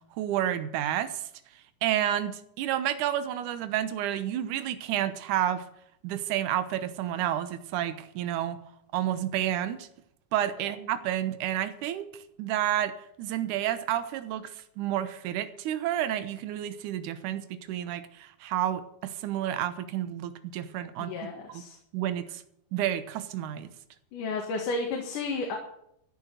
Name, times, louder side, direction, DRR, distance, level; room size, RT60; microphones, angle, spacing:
voice 1, 0.2-1.3 1.8-5.6 6.0-8.6 8.9-9.9 10.3-12.9 13.2-21.1 21.5-21.6 21.9-22.4 22.7-23.7, right 11 dB, 80° right, 10 dB, 2.4 m, -30 dB
voice 2, 21.1-21.8 24.1-25.6, left 3 dB, 80° left, 1 dB, 3.2 m, -32 dB
14.0 x 6.5 x 9.0 m, 0.73 s
omnidirectional pair, 3.6 m